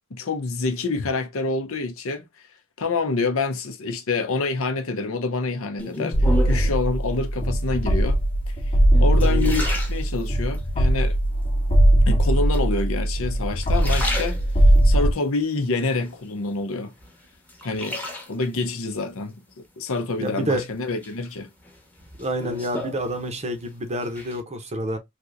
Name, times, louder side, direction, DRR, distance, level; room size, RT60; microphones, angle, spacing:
voice 1, 0.1-2.3 2.8-6.2 6.4-8.2 9.0-11.2 12.1-14.4 14.8-16.9 17.6-19.3 19.8-21.5, left 3 dB, 65° left, 0.7 m, -27 dB
sound 1, 5.8-6.9 7.6-8.1 8.7-10.6 11.1-11.7 12.5-13.2 13.5-14.9 15.3-16.6 17.0-18.6 20.0-20.6 21.0-23.6 23.9-24.4, left 1 dB, 10° left, 0.9 m, -34 dB
sound 2, 6.1-15.1, right 1 dB, 30° left, 1.0 m, -20 dB
voice 2, 9.2-9.5 20.2-20.6 22.2-25.0, right 1 dB, 30° right, 0.7 m, -28 dB
3.3 x 2.7 x 2.5 m
head